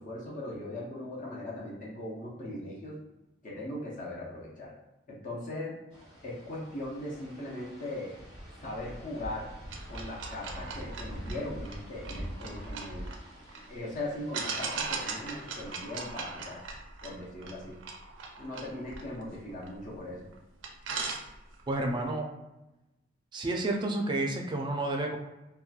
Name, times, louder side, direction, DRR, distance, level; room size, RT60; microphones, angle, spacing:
voice 1, 0.0-3.0 3.4-4.7 5.1-5.8 6.2-8.1 8.6-9.5 9.9-13.1 13.7-16.6 17.0-17.8 18.4-20.2, left 1 dB, 45° left, -4 dB, 0.6 m, -39 dB
sound 1, 5.9-15.8, equal, 75° left, 1.3 m, -45 dB
sound 2, 9.7-13.7 14.3-20.0 20.3-20.4 20.6-21.7, right 4 dB, 85° right, 0.5 m, -39 dB
voice 2, 21.7-22.3 23.3-25.2, right 2 dB, 25° right, 2 dB, 0.3 m, -30 dB
2.8 x 2.2 x 2.3 m, 0.97 s
head